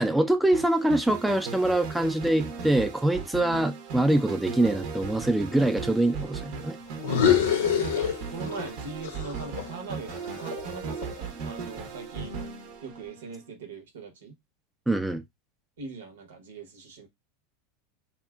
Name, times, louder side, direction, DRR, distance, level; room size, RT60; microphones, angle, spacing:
voice 1, 0.0-6.8 14.9-15.2, right 1 dB, 5° right, 0.4 m, -24 dB
sound 1, 0.5-13.4, right 5 dB, 60° right, 0.7 m, -37 dB
sound 2, 7.0-8.7 9.0-11.3, left 9 dB, 80° left, 0.6 m, -26 dB
voice 2, 7.3-12.3 12.8-14.3 15.8-17.1, right 4 dB, 85° right, 0.9 m, -41 dB
2.7 x 2.3 x 2.2 m
hypercardioid pair, 110°, 0 cm